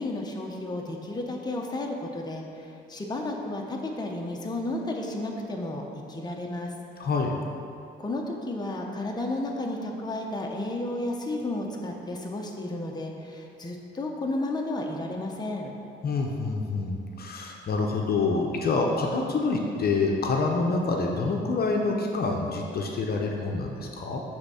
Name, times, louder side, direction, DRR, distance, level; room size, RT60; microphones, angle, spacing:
voice 1, 0.0-6.7 8.0-15.7, left 2 dB, 20° left, 0 dB, 0.9 m, -32 dB
voice 2, 7.0-7.3 16.0-24.2, left 3 dB, 50° left, 1 dB, 0.8 m, -27 dB
7.8 x 3.6 x 5.7 m, 2.6 s
cardioid pair, 90°, 20 cm